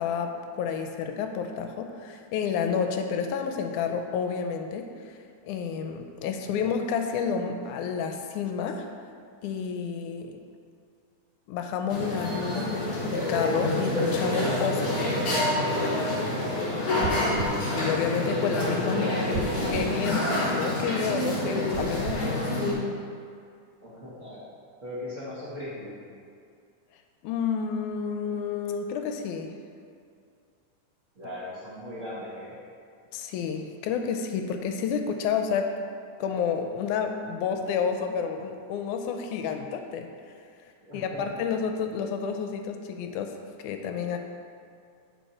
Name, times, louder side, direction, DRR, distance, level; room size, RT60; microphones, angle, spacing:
voice 1, 0.0-4.9 5.4-8.9 9.4-10.4 11.5-15.1 17.8-19.1 19.7-20.3 20.5-22.4 27.2-29.5 33.1-35.7 36.2-40.1 40.9-43.3 43.6-44.2, left 6 dB, 80° left, 5 dB, 1.9 m, -30 dB
sound 1, 11.9-22.7, left 1 dB, 50° left, 1.1 m, -27 dB
voice 2, 17.0-17.5 18.8-20.1 23.8-24.4 24.8-26.0 31.1-32.5 40.8-41.2 41.8-41.9, left 1 dB, 50° right, -9 dB, 0.9 m, -39 dB
sound 2, 17.0-17.6 19.3-19.9 21.7-22.2, right 5 dB, 90° right, 2.3 m, -34 dB
9.0 x 4.9 x 4.2 m, 2.3 s
omnidirectional pair, 3.7 m